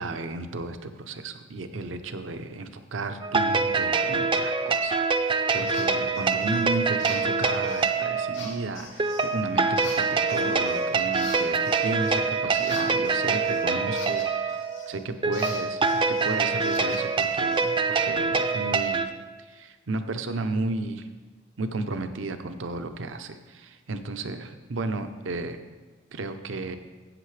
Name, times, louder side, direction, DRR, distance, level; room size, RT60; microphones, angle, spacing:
voice 1, 0.0-14.6 14.9-19.1 19.5-21.1 21.6-25.6 26.1-26.8, right 3 dB, 80° right, 8 dB, 0.7 m, -33 dB
sound 1, 3.2-19.1, right 4 dB, 25° right, 0.4 m, -25 dB
sound 2, 5.7-5.9 6.1-6.6 7.0-7.9 8.3-9.3 9.8-10.9 11.1-14.9 15.3-17.7, left 4 dB, 85° left, 2.4 m, -43 dB
13.5 x 8.3 x 3.3 m, 1.3 s
head